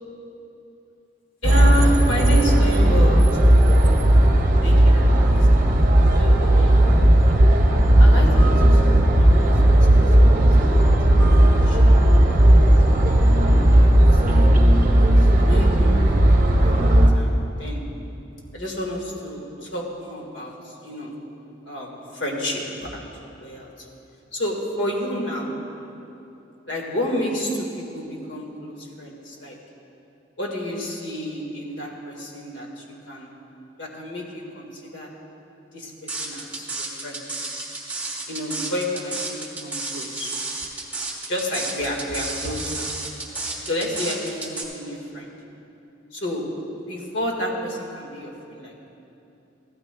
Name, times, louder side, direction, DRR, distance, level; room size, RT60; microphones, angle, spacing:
voice 1, 1.4-3.7 4.6-5.3 5.6-5.8 6.1-6.8 8.0-9.6 10.0-10.3 10.6-12.0 13.1-14.5 15.0-17.8 18.5-21.2 21.6-23.0 23.4-23.9 24.3-25.5 26.7-29.6 30.4-33.3 33.8-35.1 35.7-37.2 38.3-40.3 41.3-42.9 43.6-45.3 46.1-46.5 46.7-48.7, equal, 70° left, -1 dB, 1.7 m, -31 dB
sound 1, 1.4-17.1, right 1 dB, 45° right, 0.8 m, -15 dB
sound 2, 36.1-44.6, right 3 dB, 10° right, 1.1 m, -31 dB
15.0 x 13.0 x 2.2 m, 2.8 s
head